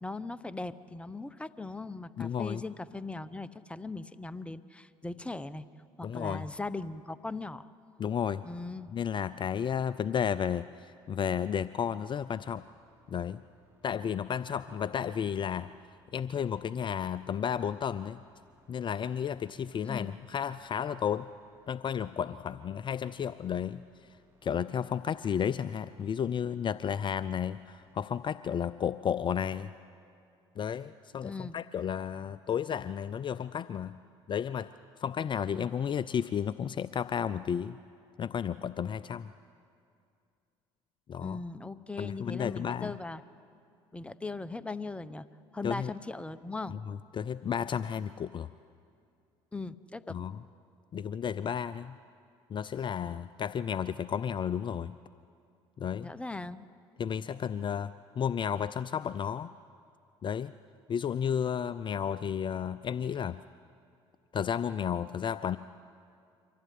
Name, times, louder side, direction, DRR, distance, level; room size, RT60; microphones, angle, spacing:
voice 1, 0.0-5.6 6.0-7.7 8.4-8.9 19.8-20.2 31.2-31.6 35.5-35.7 41.2-43.2 43.9-45.3 45.5-46.8 49.5-50.2 56.0-56.7, left 3 dB, 10° left, 14 dB, 0.8 m, -39 dB
voice 2, 2.2-2.6 6.0-6.5 8.0-8.4 8.9-12.6 13.1-13.4 13.8-15.7 16.1-18.2 18.7-21.3 21.7-23.8 24.4-29.7 30.6-34.0 34.3-34.7 35.0-37.8 38.2-39.3 41.1-41.4 42.0-42.9 45.6-45.9 46.9-48.5 50.1-50.4 50.9-52.0 52.5-54.9 55.8-56.1 57.0-57.9 58.2-59.5 60.2-60.5 60.9-63.4 64.3-65.6, left 8 dB, 40° left, 15 dB, 0.5 m, -32 dB
sound 1, 12.5-28.2, equal, 20° right, 4.8 m, -67 dB
24.5 x 15.0 x 9.4 m, 2.4 s
hypercardioid pair, 70°, 13 cm